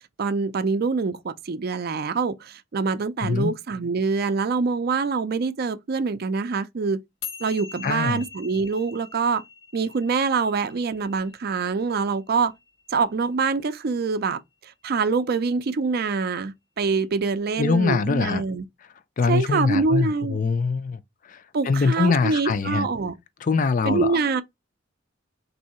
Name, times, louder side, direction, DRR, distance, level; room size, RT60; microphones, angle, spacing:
voice 1, 0.2-7.0 7.4-9.4 9.7-12.5 12.9-18.6 19.3-20.4 21.5-23.1 23.8-24.4, right 4 dB, 50° right, 0.4 m, -25 dB
voice 2, 3.2-3.5 7.8-8.2 17.6-18.4 19.2-21.0 21.3-22.9 23.4-24.2, left 4 dB, 40° left, 0.4 m, -23 dB
sound 1, 7.2-13.8, left 5 dB, 80° left, 1.4 m, -43 dB
3.6 x 2.7 x 4.2 m
head